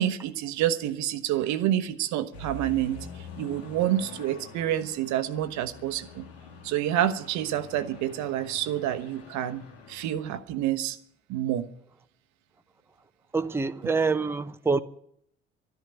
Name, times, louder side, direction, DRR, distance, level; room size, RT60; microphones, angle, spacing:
voice 1, 0.0-3.1 3.4-6.2 6.6-11.0 11.3-11.7, right 12 dB, 60° right, 1.0 m, -28 dB
sound 1, 2.3-10.4, left 3 dB, 75° left, 1.8 m, -46 dB
voice 2, 13.3-14.8, right 4 dB, 5° right, 0.8 m, -26 dB
12.5 x 10.5 x 9.1 m
figure-of-eight pair, 50°, 32 cm